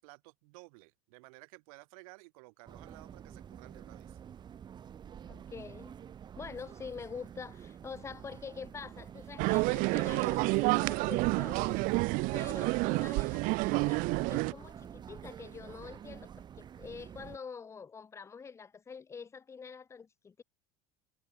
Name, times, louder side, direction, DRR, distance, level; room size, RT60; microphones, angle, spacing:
voice 1, 0.0-4.2, right 27 dB, 85° right, 6.6 m, -55 dB
sound 1, 2.7-17.4, right 8 dB, 25° right, 4.2 m, -49 dB
voice 2, 5.2-5.9 6.4-11.8 12.3-20.4, left 5 dB, 15° left, 1.6 m, -46 dB
sound 2, 9.4-14.5, right 25 dB, 50° right, 0.6 m, -29 dB
cardioid pair, 170°, 18 cm